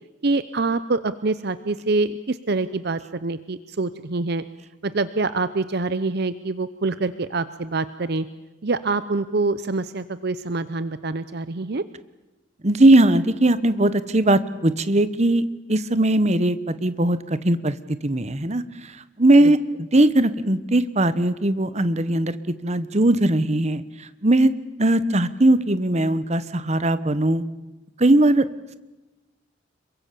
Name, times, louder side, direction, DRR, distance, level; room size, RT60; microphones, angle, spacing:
voice 1, 0.2-4.4 4.8-8.3 8.6-11.8, right 3 dB, 55° right, 14 dB, 0.7 m, -25 dB
voice 2, 12.6-17.7 18.0-19.6 19.9-22.4 22.6-24.5 24.8-27.4 28.0-28.5, right 1 dB, 35° right, 14 dB, 1.1 m, -19 dB
27.0 x 23.5 x 6.9 m, 1.1 s
head